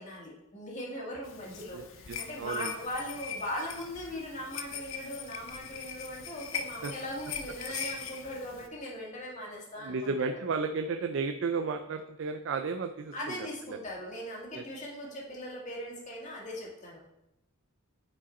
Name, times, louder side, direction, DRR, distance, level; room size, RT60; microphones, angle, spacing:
voice 1, 0.0-10.4 13.1-17.0, equal, 35° left, -3 dB, 1.8 m, -39 dB
sound 1, 1.2-8.7, left 7 dB, 60° left, 0.6 m, -41 dB
voice 2, 1.7-2.7 6.8-6.9 9.8-13.4 13.7-13.8 14.5-14.6, right 4 dB, 55° right, 6 dB, 0.4 m, -33 dB
8.6 x 4.8 x 4.1 m, 0.88 s
head